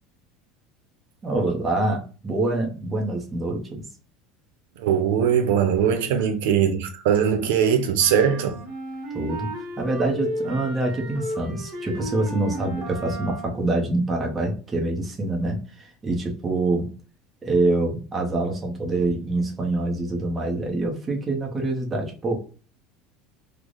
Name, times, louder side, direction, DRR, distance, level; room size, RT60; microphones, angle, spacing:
voice 1, 1.2-3.8 6.1-6.2 9.1-9.5 9.8-16.9 17.4-22.4, right 2 dB, 15° right, 0.7 m, -25 dB
voice 2, 4.8-8.6, right 8 dB, 85° right, 0.6 m, -21 dB
sound 1, 8.0-13.7, right 1 dB, 30° right, 1.5 m, -34 dB
3.2 x 2.0 x 3.8 m
cardioid pair, 165°, 0 cm